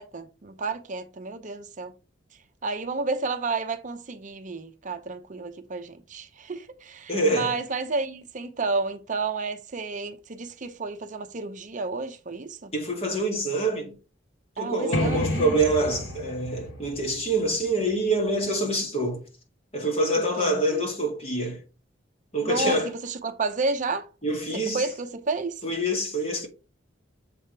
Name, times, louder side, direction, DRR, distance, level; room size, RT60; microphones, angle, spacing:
voice 1, 0.0-1.9 2.6-12.7 14.6-15.6 20.2-20.9 22.4-24.1 24.7-25.6, right 3 dB, 40° right, 0.7 m, -31 dB
voice 2, 7.1-7.6 12.7-14.0 14.6-19.2 19.7-21.6 22.3-22.9 24.2-24.8 25.6-26.5, right 1 dB, 35° left, 2.1 m, -26 dB
sound 1, 14.9-18.6, left 1 dB, 80° left, 1.0 m, -32 dB
7.4 x 3.5 x 4.5 m
head